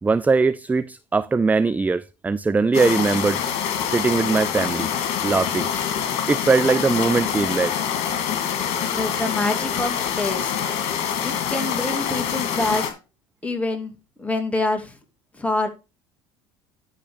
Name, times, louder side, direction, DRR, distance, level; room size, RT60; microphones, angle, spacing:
voice 1, 0.0-4.9 5.2-5.7 6.3-7.8, right 4 dB, 10° right, 0.4 m, -21 dB
sound 1, 2.7-12.9, left 8 dB, 60° left, 2.6 m, -25 dB
voice 2, 8.9-10.5 11.2-12.8 13.4-13.9 14.2-14.9 15.4-15.7, left 2 dB, 10° left, 2.5 m, -26 dB
11.5 x 4.0 x 5.0 m
hypercardioid pair, 75°, 13 cm